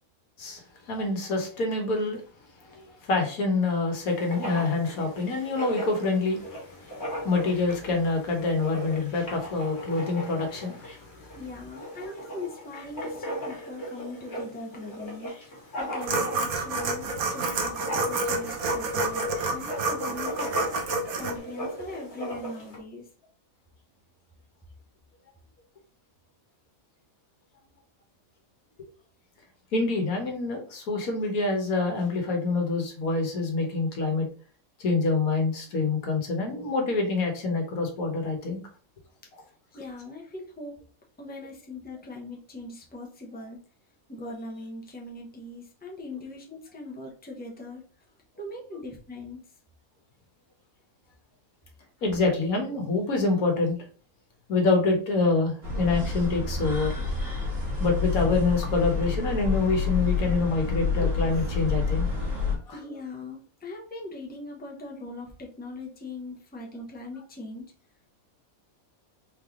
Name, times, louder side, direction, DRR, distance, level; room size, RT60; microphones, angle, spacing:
voice 1, 0.9-2.2 2.6-6.5 6.8-11.1 12.0-12.1 29.7-34.3 34.8-38.6 52.0-53.8 54.5-57.0 57.8-62.1 62.7-62.8, left 3 dB, 80° left, 1.6 m, -26 dB
Writing, 4.0-22.8, equal, 50° left, 1.9 m, -38 dB
voice 2, 11.4-19.2 19.5-20.5 21.1-23.1 39.7-40.8 41.2-43.6 44.1-47.8 48.4-49.4 62.7-67.7, left 2 dB, 10° left, 0.9 m, -40 dB
sound 1, 16.0-21.3, right 3 dB, 80° right, 1.3 m, -29 dB
sound 2, 55.6-62.5, left 4 dB, 45° right, 1.8 m, -28 dB
4.2 x 3.3 x 3.6 m
omnidirectional pair, 1.5 m